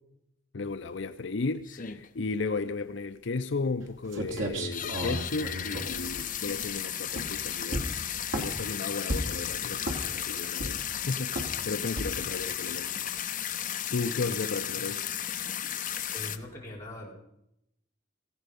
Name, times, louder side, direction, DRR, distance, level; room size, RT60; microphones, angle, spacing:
voice 1, 0.5-7.9 8.3-13.1 13.9-15.0, left 3 dB, 65° left, 0.6 m, -34 dB
sound 1, 0.7-0.8 1.1-1.2 1.6-2.3 2.7-2.8 2.9-3.0 3.4-3.5 4.0-4.2 4.6-16.4, left 10 dB, 45° left, 1.0 m, -34 dB
sound 2, 3.8-3.9 4.1-6.7 7.1-7.4 7.7-8.7 9.1-9.5 9.8-10.2 10.6-11.0 11.4-11.6 12.0-12.3, right 1 dB, 80° right, 2.7 m, -33 dB
voice 2, 16.1-17.1, left 1 dB, 15° left, 5.0 m, -41 dB
18.0 x 15.0 x 5.3 m
head